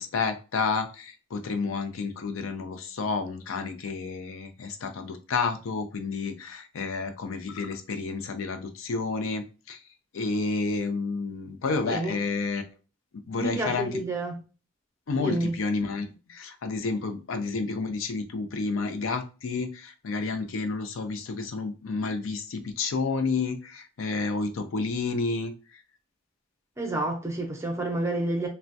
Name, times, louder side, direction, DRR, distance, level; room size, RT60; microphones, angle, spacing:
voice 1, 0.0-9.8 10.1-12.6 13.1-13.9 15.1-25.5, left 4 dB, 85° left, 0.4 m, -30 dB
voice 2, 13.4-14.4 15.2-15.5 26.8-28.5, right 2 dB, 15° right, 0.5 m, -29 dB
3.3 x 2.1 x 2.6 m
head